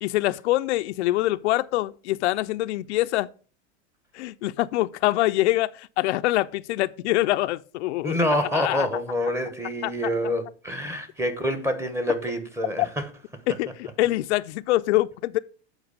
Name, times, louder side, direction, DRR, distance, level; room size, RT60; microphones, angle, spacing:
voice 1, 0.0-3.3 4.1-8.2 8.5-8.9 9.8-9.9 13.5-15.4, left 17 dB, 75° left, 0.5 m, -24 dB
voice 2, 8.0-13.1, equal, 10° right, 1.0 m, -27 dB
8.0 x 4.6 x 6.4 m
supercardioid pair, 140°, 34 cm